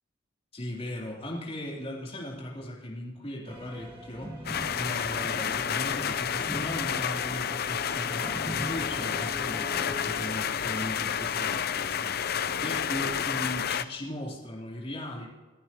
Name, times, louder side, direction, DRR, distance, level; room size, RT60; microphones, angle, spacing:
voice 1, 0.5-15.3, left 1 dB, 30° left, -4 dB, 3.6 m, -38 dB
sound 1, 3.5-10.3, left 1 dB, 25° right, 2.2 m, -41 dB
sound 2, 4.4-13.8, left 8 dB, 50° left, 0.5 m, -30 dB
29.5 x 11.5 x 3.0 m, 1.3 s
head